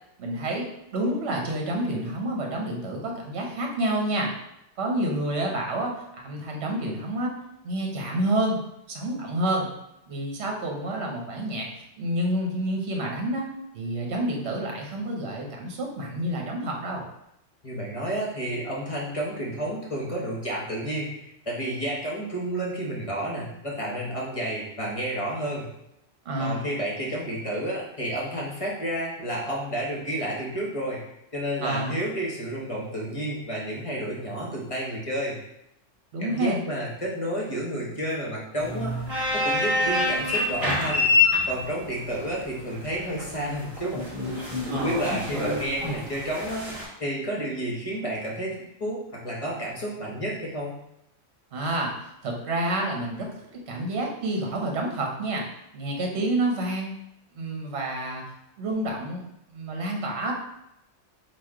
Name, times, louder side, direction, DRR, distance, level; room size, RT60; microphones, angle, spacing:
voice 1, 0.2-4.3 4.8-7.4 7.6-8.6 8.9-9.7 10.1-11.7 12.0-13.5 13.7-17.0 26.2-26.6 31.6-31.9 36.1-36.6 44.7-45.0 51.5-51.9 52.2-53.3 53.5-55.4 55.7-56.9 57.4-58.2 58.6-59.2 59.5-60.3, right 1 dB, 65° right, 1 dB, 1.1 m, -28 dB
voice 2, 17.6-25.6 26.4-31.0 31.3-35.4 36.2-38.9 39.3-41.1 41.5-44.0 44.7-46.7 47.0-50.8, right 1 dB, 30° left, -4 dB, 0.9 m, -31 dB
sound 1, 38.6-46.8, left 2 dB, 30° right, 1.7 m, -26 dB
4.1 x 2.4 x 4.6 m, 0.82 s
omnidirectional pair, 1.3 m